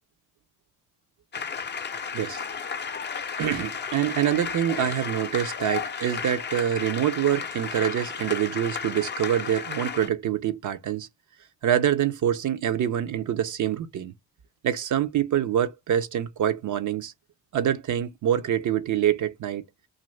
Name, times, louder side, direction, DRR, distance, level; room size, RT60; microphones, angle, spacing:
sound 1, 1.3-10.1, left 6 dB, 30° left, 0.5 m, -33 dB
voice 1, 3.4-11.1 11.6-14.1 14.6-17.1 17.5-19.6, right 10 dB, 60° right, 0.6 m, -25 dB
2.6 x 2.4 x 3.2 m
hypercardioid pair, 45°, 35 cm